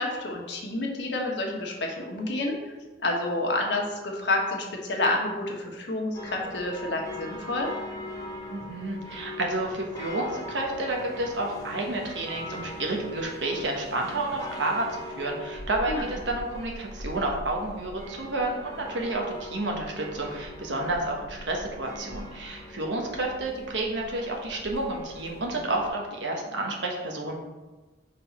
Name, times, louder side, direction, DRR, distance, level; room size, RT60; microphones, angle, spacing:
voice 1, 0.0-2.7 3.0-7.7 15.9-16.0, left 2 dB, 70° left, 0 dB, 1.3 m, -29 dB
sound 1, 6.1-25.9, left 1 dB, 20° left, 1.4 m, -41 dB
voice 2, 8.5-27.4, right 2 dB, 75° right, 0 dB, 1.2 m, -30 dB
5.4 x 3.9 x 5.3 m, 1.2 s
head